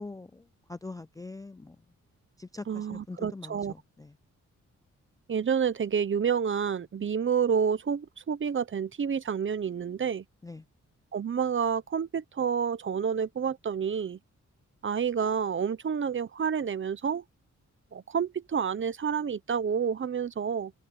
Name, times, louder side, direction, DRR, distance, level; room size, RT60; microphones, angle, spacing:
voice 1, 0.0-1.8 2.4-4.1 10.4-10.6, left 3 dB, 10° left, 0.4 m, -43 dB
voice 2, 2.7-3.7 5.3-10.2 11.1-14.2 14.8-17.2 17.9-20.7, right 7 dB, 40° right, 0.9 m, -29 dB
cardioid pair, 110°, 29 cm